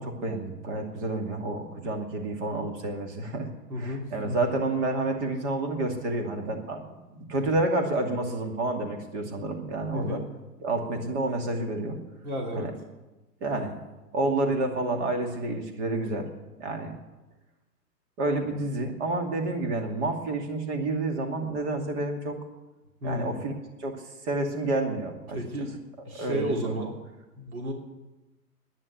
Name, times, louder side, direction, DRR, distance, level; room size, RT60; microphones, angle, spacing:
voice 1, 0.0-3.5 3.8-10.2 10.6-12.0 12.6-12.7 13.4-13.8 14.1-16.3 16.6-16.9 18.2-22.4 23.0-23.5 23.8-25.4 26.2-26.8, right 2 dB, 45° right, 4 dB, 2.6 m, -29 dB
voice 2, 3.7-4.4 9.9-10.3 12.2-12.7 23.0-23.4 25.3-25.7 26.0-26.9 27.4-27.7, equal, 65° right, 1 dB, 3.1 m, -32 dB
11.0 x 10.0 x 9.5 m, 1.1 s
figure-of-eight pair, 115°, 48 cm